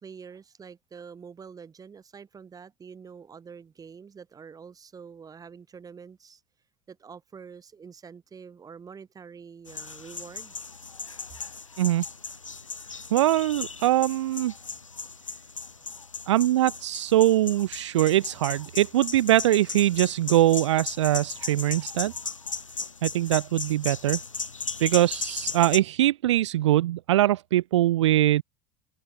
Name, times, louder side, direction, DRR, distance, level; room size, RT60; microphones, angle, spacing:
voice 1, 0.0-6.4 6.9-10.5, right 6 dB, 20° right, 2.7 m, -46 dB
sound 1, 9.7-25.8, left 4 dB, 85° left, 1.0 m, -37 dB
voice 2, 13.1-14.5 16.3-22.1 23.0-24.2 24.8-28.4, right 14 dB, 65° right, 0.4 m, -22 dB
figure-of-eight pair, 75°, 16 cm